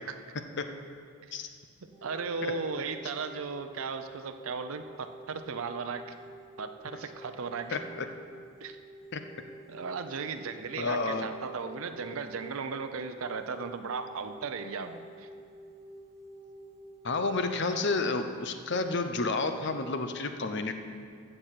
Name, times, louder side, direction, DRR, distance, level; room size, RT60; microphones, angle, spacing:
voice 1, 1.8-6.1 6.6-7.8 8.6-8.8 9.7-15.3, right 5 dB, 80° right, 8 dB, 0.6 m, -36 dB
sound 1, 1.9-19.9, right 1 dB, 15° right, 1.1 m, -50 dB
voice 2, 7.7-8.1 9.1-9.2 10.8-11.3 17.0-20.7, left 3 dB, 55° left, 7 dB, 0.8 m, -30 dB
15.0 x 6.7 x 5.8 m, 2.2 s
head